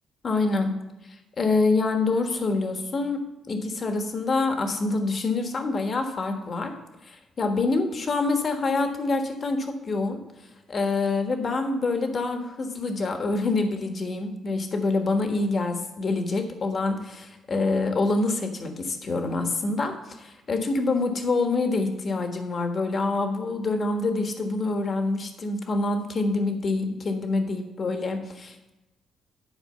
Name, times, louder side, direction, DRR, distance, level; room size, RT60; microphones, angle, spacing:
voice 1, 0.2-0.7 1.4-3.2 3.5-6.7 7.0-10.2 10.7-28.7, left 3 dB, 45° left, 5 dB, 1.4 m, -26 dB
11.0 x 4.5 x 6.7 m, 1.0 s
cardioid pair, 90°, 0 cm